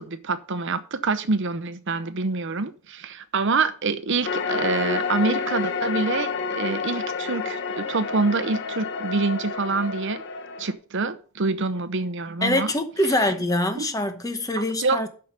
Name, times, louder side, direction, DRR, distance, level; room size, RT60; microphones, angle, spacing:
voice 1, 0.0-10.2 10.6-12.7 13.8-13.9 14.6-15.1, right 3 dB, 55° right, 0.8 m, -26 dB
sound 1, 4.2-10.7, left 4 dB, 55° left, 1.1 m, -29 dB
voice 2, 12.4-15.1, left 1 dB, 15° left, 1.0 m, -24 dB
8.5 x 5.7 x 6.6 m
head